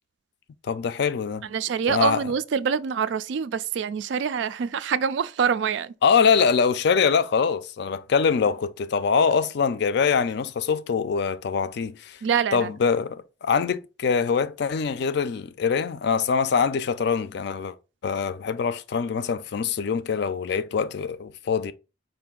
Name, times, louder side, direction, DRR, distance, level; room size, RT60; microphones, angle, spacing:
voice 1, 0.6-1.5 1.9-2.2 6.0-12.2 12.5-17.7 18.0-21.7, left 6 dB, 60° left, 0.4 m, -23 dB
voice 2, 1.5-5.9 12.2-12.7, right 7 dB, 70° right, 0.3 m, -25 dB
4.8 x 2.6 x 3.7 m
head